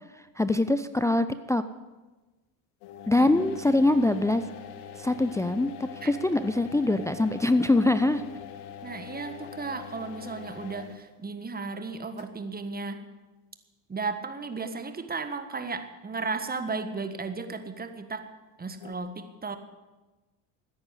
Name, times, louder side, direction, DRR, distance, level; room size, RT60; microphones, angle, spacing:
voice 1, 0.4-1.6 3.1-4.4 5.0-5.7 6.1-8.2, left 2 dB, 5° left, 11 dB, 0.5 m, -23 dB
sound 1, 2.8-11.1 12.2-12.3 18.8-18.9, left 9 dB, 70° left, 1.5 m, -43 dB
voice 2, 8.8-13.1 13.9-18.3 18.6-19.6, right 4 dB, 20° right, 9 dB, 1.5 m, -35 dB
14.0 x 9.9 x 8.3 m, 1.2 s
hypercardioid pair, 85°, 46 cm